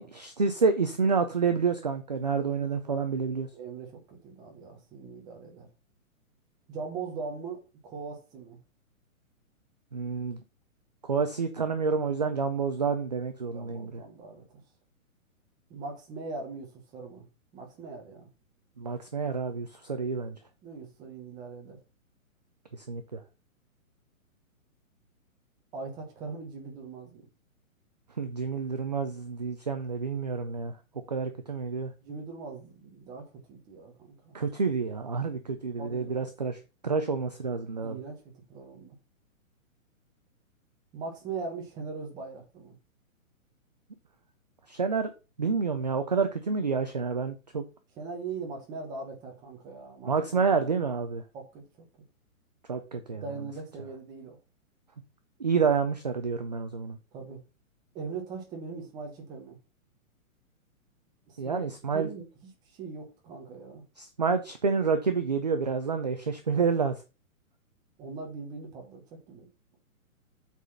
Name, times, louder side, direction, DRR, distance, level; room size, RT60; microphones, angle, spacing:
voice 1, 0.0-3.5 9.9-10.4 11.0-14.0 18.8-20.4 22.7-23.2 28.2-30.7 31.1-31.9 34.3-38.0 44.7-45.1 45.4-47.6 50.0-51.2 52.7-53.2 55.4-57.0 61.4-62.1 64.0-67.0, right 5 dB, 30° right, 0.4 m, -29 dB
voice 2, 2.5-3.1 3.5-5.7 6.7-8.6 13.5-14.4 15.7-17.2 17.5-18.3 20.6-21.8 25.7-27.3 32.0-33.9 34.2-34.4 35.8-36.3 37.8-38.2 38.5-39.0 40.9-42.8 48.0-50.4 51.3-51.6 53.1-54.4 57.1-57.4 57.9-59.6 61.3-61.6 61.9-62.2 62.7-63.8 68.0-69.5, right 4 dB, 10° right, 1.0 m, -40 dB
8.1 x 4.1 x 5.5 m
hypercardioid pair, 170°, 42 cm